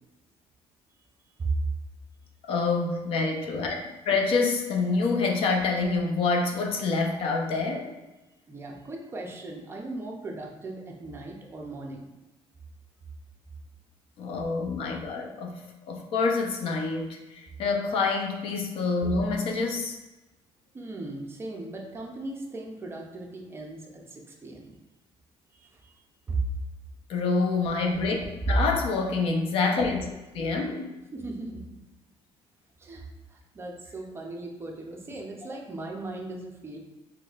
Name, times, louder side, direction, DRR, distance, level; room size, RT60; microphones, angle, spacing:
voice 1, 2.5-3.8 4.1-8.0 14.2-20.0 27.1-28.2 28.4-30.1 30.3-30.9, left 4 dB, 60° left, 2 dB, 0.5 m, -27 dB
voice 2, 8.5-12.0 20.7-24.8 25.5-25.9 26.3-26.4 28.2-28.6 31.1-31.6 32.8-36.8, right 2 dB, 20° right, 0 dB, 0.5 m, -36 dB
3.9 x 3.1 x 2.4 m, 1.0 s
cardioid pair, 145°, 11 cm